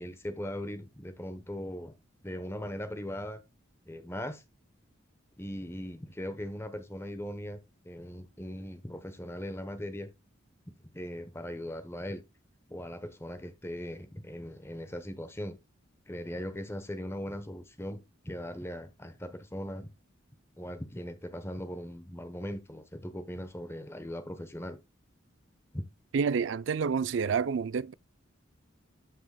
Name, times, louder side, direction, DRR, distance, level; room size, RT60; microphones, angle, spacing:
voice 1, 0.0-1.9 2.2-3.4 3.8-4.4 5.4-7.6 7.8-10.1 10.7-12.2 12.7-15.6 16.1-19.9 20.6-24.8 25.7-25.9, equal, 15° left, 0.9 m, -39 dB
voice 2, 26.1-27.9, right 6 dB, 65° right, 0.4 m, -28 dB
13.0 x 6.2 x 2.2 m
head